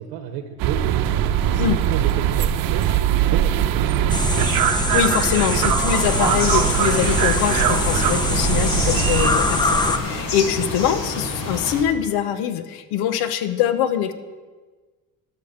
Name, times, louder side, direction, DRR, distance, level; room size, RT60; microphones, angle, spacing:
voice 1, 0.0-4.3, right 9 dB, 75° right, 7 dB, 1.0 m, -33 dB
sound 1, 0.6-9.3, right 11 dB, 60° right, 0.9 m, -21 dB
sound 2, 4.1-10.0, left 2 dB, 10° left, 0.8 m, -23 dB
voice 2, 4.7-14.1, left 9 dB, 70° left, 11 dB, 1.0 m, -23 dB
sound 3, 5.9-11.8, left 2 dB, 55° left, 2.4 m, -28 dB
12.0 x 6.4 x 6.6 m, 1.3 s
supercardioid pair, 100°, 39 cm